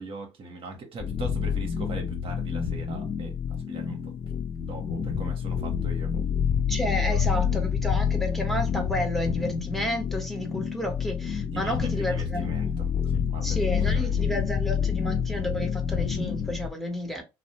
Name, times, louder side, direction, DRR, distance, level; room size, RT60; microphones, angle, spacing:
voice 1, 0.0-4.1 4.6-6.1 7.0-7.5 10.8-10.9 11.5-13.6 13.9-14.4, right 3 dB, 45° right, 0.9 m, -41 dB
sound 1, 1.0-16.7, left 7 dB, 40° left, 0.5 m, -28 dB
voice 2, 6.7-12.5 13.4-17.2, equal, ahead, 1.0 m, -31 dB
2.5 x 2.0 x 2.9 m
hypercardioid pair, 65°, 13 cm